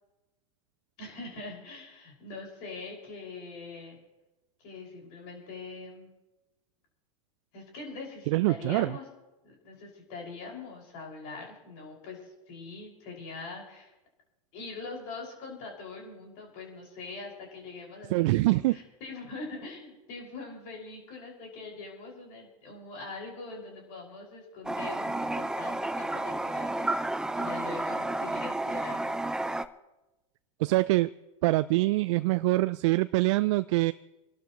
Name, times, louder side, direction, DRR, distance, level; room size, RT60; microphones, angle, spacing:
voice 1, 1.0-4.0 4.6-6.1 7.5-9.1 9.4-13.9 14.5-18.1 18.5-29.2, left 3 dB, 55° left, -1 dB, 5.6 m, -43 dB
voice 2, 8.3-9.0 18.1-18.8 30.6-31.1 31.4-33.9, right 20 dB, 60° right, 14 dB, 0.4 m, -24 dB
Toilet flush, 24.6-29.6, right 2 dB, 5° right, 0.5 m, -31 dB
27.0 x 12.0 x 3.0 m, 1.0 s
hypercardioid pair, 95°, 18 cm